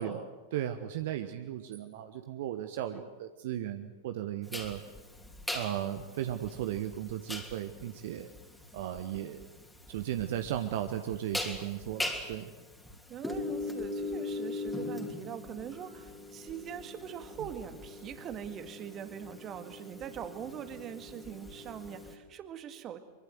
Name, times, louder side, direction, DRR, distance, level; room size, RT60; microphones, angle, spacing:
voice 1, 0.0-4.8 5.5-8.3 8.7-9.5 9.9-12.5, right 11 dB, 55° right, 8 dB, 1.2 m, -36 dB
sound 1, 4.5-22.1, left 2 dB, 5° left, 3.2 m, -40 dB
voice 2, 13.1-23.0, right 9 dB, 30° right, 9 dB, 2.0 m, -42 dB
24.0 x 23.5 x 7.9 m, 1.3 s
figure-of-eight pair, 90°, 0 cm